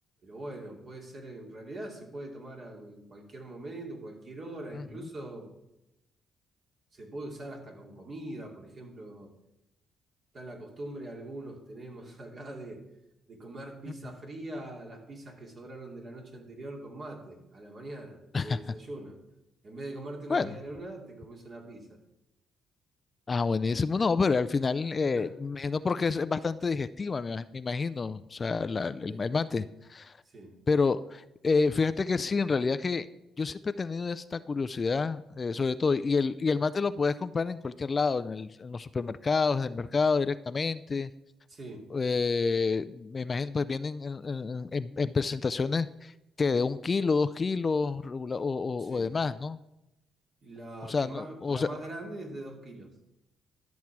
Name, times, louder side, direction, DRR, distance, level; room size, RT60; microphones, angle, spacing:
voice 1, 0.2-5.5 6.9-9.3 10.3-12.8 13.3-19.2 19.6-22.0 25.0-25.3 29.1-29.3 30.3-30.5 41.5-41.8 48.8-49.1 50.4-52.9, right 1 dB, 45° right, 1 dB, 2.6 m, -42 dB
voice 2, 23.3-30.2 30.7-33.1 33.4-41.1 41.9-46.1 46.4-49.6 50.9-51.7, left 4 dB, 35° left, 14 dB, 0.4 m, -28 dB
12.5 x 7.2 x 4.7 m, 0.91 s
cardioid pair, 90°, 0 cm